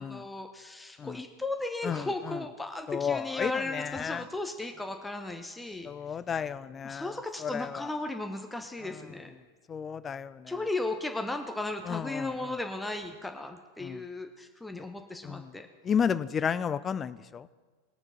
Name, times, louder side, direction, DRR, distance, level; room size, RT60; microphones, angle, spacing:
voice 1, 0.0-5.9 6.8-9.3 10.5-15.7, left 2 dB, 5° left, 5 dB, 0.8 m, -36 dB
voice 2, 1.8-2.4 2.9-4.3 5.8-7.1 7.4-7.9 8.8-9.0 9.7-10.5 11.9-12.6 13.8-14.0 14.7-14.8 15.2-15.5 15.8-17.5, left 7 dB, 20° left, 16 dB, 0.4 m, -32 dB
20.5 x 6.9 x 4.2 m, 1.5 s
figure-of-eight pair, 90°, 0 cm